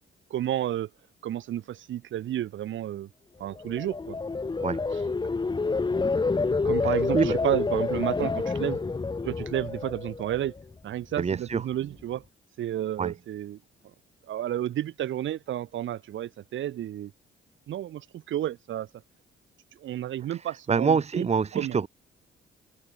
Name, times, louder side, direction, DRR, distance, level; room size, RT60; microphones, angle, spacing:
voice 1, 0.3-0.9 1.2-3.1 3.4-4.2 6.6-8.8 9.2-10.5 10.8-12.2 12.6-13.6 14.3-17.1 17.7-18.9 19.8-21.3 21.5-21.8, right 12 dB, 75° right, 3.1 m, -31 dB
sound 1, 3.5-10.7 11.1-11.5, left 4 dB, 20° left, 1.5 m, -28 dB
voice 2, 11.2-11.6 13.0-13.1 20.7-21.9, right 5 dB, 35° right, 1.4 m, -25 dB
open air
cardioid pair, 90°, 20 cm